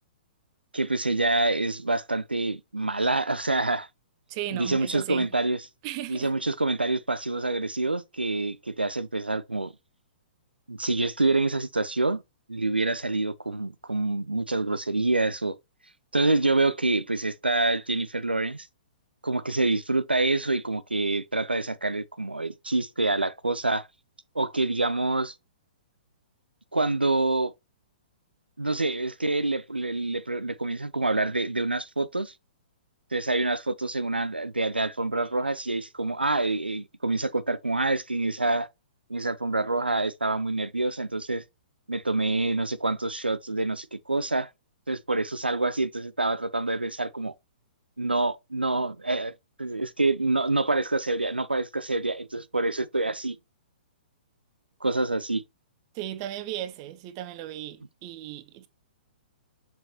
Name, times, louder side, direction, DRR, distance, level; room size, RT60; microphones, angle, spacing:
voice 1, 0.7-3.9 4.5-5.7 6.1-9.7 10.7-12.2 12.5-15.6 16.1-18.7 19.2-23.9 24.3-25.3 26.7-27.5 28.6-32.3 33.1-38.7 39.1-41.4 41.9-44.5 44.9-47.3 48.0-49.3 49.6-53.4 54.8-55.4, right 2 dB, 85° right, 0.5 m, -26 dB
voice 2, 4.3-5.3 5.8-6.3 55.9-58.7, right 13 dB, 35° right, 1.0 m, -36 dB
7.0 x 6.0 x 2.9 m
figure-of-eight pair, 115°, 5 cm